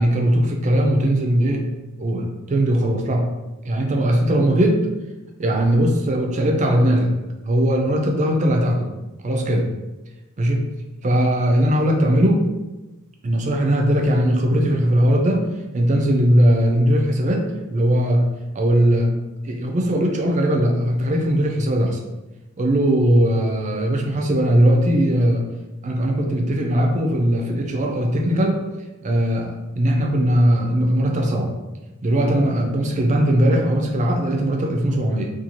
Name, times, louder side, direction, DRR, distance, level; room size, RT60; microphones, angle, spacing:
voice 1, 0.0-1.7 2.0-3.3 3.6-4.9 5.4-7.1 7.5-8.9 9.2-9.7 10.4-10.7 11.0-12.5 13.2-15.5 15.7-18.3 18.5-19.1 19.4-22.0 22.6-25.5 25.8-28.6 29.0-31.6 32.0-35.3, equal, 35° right, 2 dB, 0.4 m, -19 dB
2.6 x 2.3 x 2.9 m, 1.1 s
head